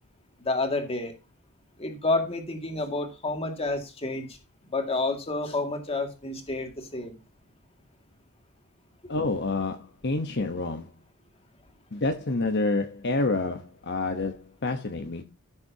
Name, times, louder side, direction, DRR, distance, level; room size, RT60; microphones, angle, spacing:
voice 1, 0.4-1.1 1.8-4.3 4.7-7.2, left 2 dB, 25° left, 2.2 m, -29 dB
voice 2, 9.1-10.9 11.9-15.2, left 3 dB, 50° left, 1.0 m, -28 dB
14.5 x 7.2 x 2.8 m
head